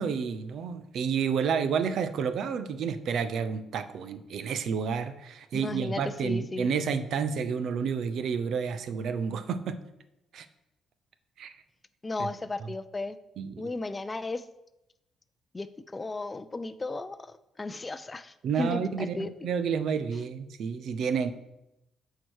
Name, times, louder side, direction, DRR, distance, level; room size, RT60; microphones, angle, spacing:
voice 1, 0.0-9.8 10.3-10.5 11.4-11.5 12.2-12.3 13.4-13.7 18.4-21.3, right 6 dB, 70° right, 12 dB, 0.6 m, -30 dB
voice 2, 5.6-6.7 12.0-13.2 13.6-14.4 15.5-19.3, left 2 dB, 20° left, 13 dB, 0.5 m, -35 dB
7.7 x 4.7 x 6.3 m, 0.89 s
cardioid pair, 110°, 0 cm